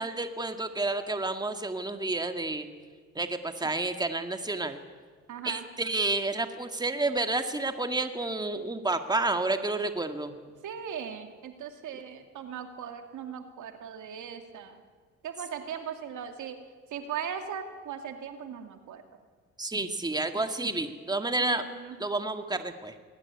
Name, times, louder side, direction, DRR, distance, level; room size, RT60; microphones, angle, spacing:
voice 1, 0.0-2.7 3.2-4.8 5.4-10.3 19.6-21.6 22.0-22.9, right 2 dB, 15° right, 7 dB, 1.9 m, -30 dB
voice 2, 5.3-5.7 10.6-14.8 15.2-16.6 16.9-19.0 21.4-22.0, right 8 dB, 75° right, 6 dB, 2.6 m, -38 dB
21.0 x 18.0 x 9.7 m, 1.5 s
cardioid pair, 90°, 30 cm